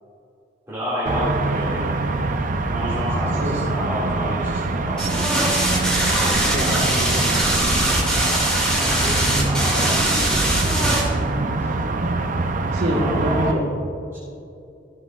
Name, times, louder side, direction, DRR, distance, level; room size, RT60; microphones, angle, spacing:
voice 1, 0.7-2.1 2.7-5.2 8.7-10.0 11.6-11.7 12.8-13.6 14.1-14.2, equal, 15° right, -11 dB, 2.1 m, -29 dB
sound 1, 1.1-13.5, right 2 dB, 45° right, 0.5 m, -24 dB
sound 2, 5.0-11.0, right 1 dB, 5° left, 2.2 m, -21 dB
voice 2, 6.5-7.5 12.7-13.7, equal, 70° right, -6 dB, 1.5 m, -25 dB
14.0 x 7.9 x 2.4 m, 2.6 s
head